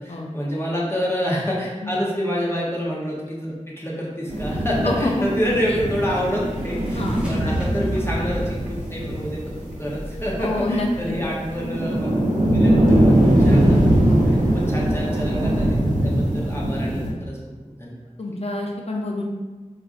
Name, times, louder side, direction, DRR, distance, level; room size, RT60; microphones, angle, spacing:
voice 1, 0.0-12.2 12.5-13.8 14.2-15.8 16.0-17.4 17.6-18.0, equal, 20° left, -5 dB, 0.9 m, -27 dB
sound 1, 4.3-17.1, right 1 dB, 75° right, 0.8 m, -21 dB
voice 2, 4.8-5.3 5.7-5.8 6.9-7.2 10.4-11.2 14.0-14.4 18.2-19.3, left 1 dB, 50° left, 0 dB, 0.6 m, -27 dB
sound 2, 4.9-10.4, right 1 dB, 10° right, 1.0 m, -36 dB
4.4 x 2.5 x 2.5 m, 1.3 s
wide cardioid pair, 45°, 13 cm